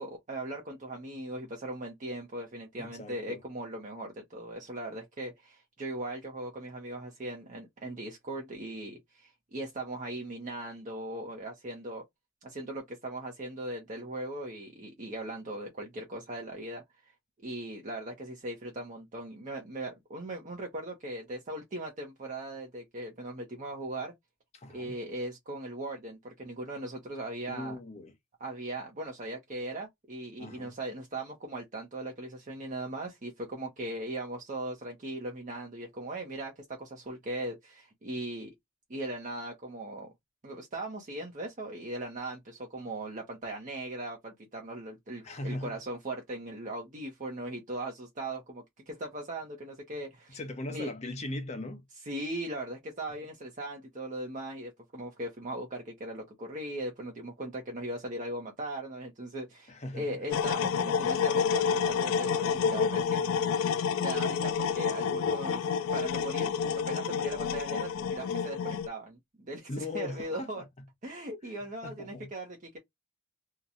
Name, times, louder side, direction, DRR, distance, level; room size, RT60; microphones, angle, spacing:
voice 1, 0.0-12.0 12.4-16.8 17.4-24.1 24.7-27.8 28.4-38.5 38.9-40.1 40.4-50.4 50.7-50.9 52.0-63.2 64.0-66.5 66.8-70.6 71.0-72.8, right 1 dB, 40° right, 0.7 m, -39 dB
voice 2, 2.8-3.4 24.5-24.9 27.5-28.1 30.4-30.7 45.2-45.8 50.3-51.8 59.7-60.2 69.7-70.6 71.8-72.3, left 2 dB, 35° left, 0.8 m, -39 dB
sound 1, 60.3-68.9, left 6 dB, 80° left, 0.4 m, -29 dB
2.9 x 2.2 x 2.4 m
head